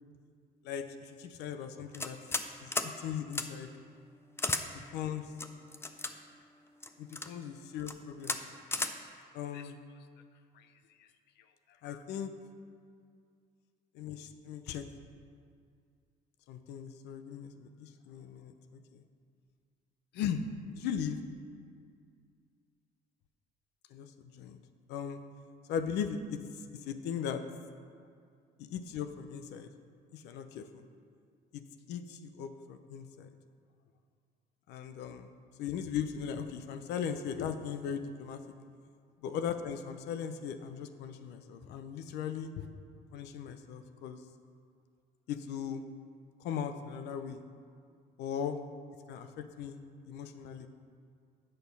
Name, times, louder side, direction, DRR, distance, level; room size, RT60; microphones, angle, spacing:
voice 1, 0.6-2.2 2.6-3.7 4.7-5.3 7.0-8.4 9.3-9.8 10.6-10.7 11.0-11.1 11.8-12.3 13.9-14.9 16.5-19.0 20.1-20.4 20.8-21.2 23.9-24.6 24.9-25.2 25.7-26.4 26.7-27.4 28.6-29.7 30.1-30.8 31.5-31.6 31.9-33.3 34.7-35.3 35.6-38.4 39.2-42.7 43.1-44.2 45.3-45.8 46.4-47.4 48.2-48.6 49.1-49.8 50.1-50.7, left 8 dB, 85° left, 9 dB, 0.6 m, -38 dB
sound 1, 1.9-2.5 2.7-2.9 3.3-3.5 4.4-4.6 5.4-6.1 6.8-7.3 7.8-7.9 8.2-8.4 8.7-8.9, left 3 dB, 15° left, 0.5 m, -33 dB
8.1 x 6.6 x 5.4 m, 2.2 s
cardioid pair, 110°, 17 cm